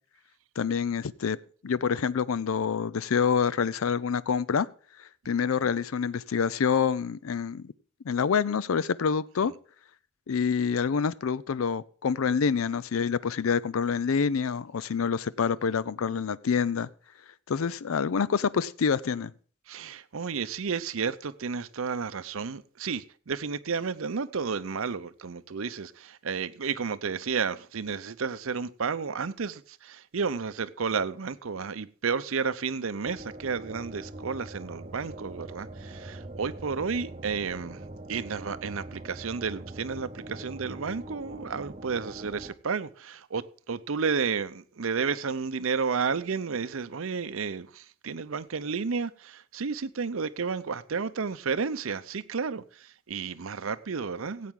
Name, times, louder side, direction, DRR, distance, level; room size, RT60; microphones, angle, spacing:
voice 1, 0.6-1.4 1.6-4.7 5.0-7.7 8.1-9.5 10.3-16.9 17.5-19.3, left 6 dB, 80° left, 0.4 m, -27 dB
voice 2, 19.7-37.8 38.1-54.5, right 5 dB, 75° right, 0.6 m, -32 dB
sound 1, 33.0-42.5, right 1 dB, 30° right, 0.7 m, -43 dB
17.0 x 8.5 x 3.7 m
head